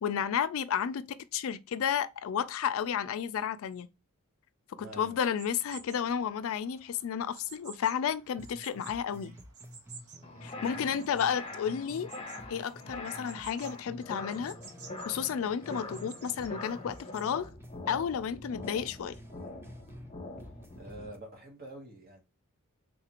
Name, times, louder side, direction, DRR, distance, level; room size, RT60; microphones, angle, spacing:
voice 1, 0.0-3.9 4.8-9.3 10.4-12.1 12.5-14.6 15.0-17.5 17.9-19.2, left 8 dB, 65° left, 0.3 m, -32 dB
voice 2, 4.8-5.2 10.7-10.9 20.8-22.2, right 1 dB, 45° right, 1.1 m, -46 dB
sound 1, 5.3-17.2, right 5 dB, 75° right, 0.8 m, -53 dB
sound 2, 8.1-8.2 8.4-12.1 12.4-16.1 16.4-20.1 20.4-21.2, equal, 10° right, 0.4 m, -51 dB
sound 3, 10.2-21.1, left 2 dB, 30° left, 0.7 m, -44 dB
3.7 x 2.5 x 2.8 m
head